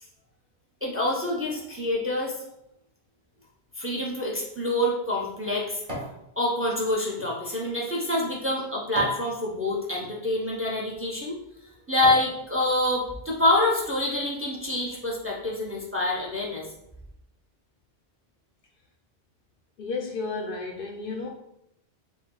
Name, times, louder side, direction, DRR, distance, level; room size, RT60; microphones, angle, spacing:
voice 1, 0.8-2.4 3.8-5.8 6.4-11.4 11.9-16.6, left 1 dB, 15° right, -3 dB, 0.6 m, -26 dB
sound 1, 4.4-6.2 6.7-9.3 9.9-10.1 10.8-11.0 11.5-12.4 12.8-12.9, equal, 35° right, 1.3 m, -39 dB
voice 2, 19.8-21.3, left 4 dB, 60° left, 2 dB, 0.7 m, -32 dB
4.9 x 2.2 x 3.8 m, 0.81 s
omnidirectional pair, 1.1 m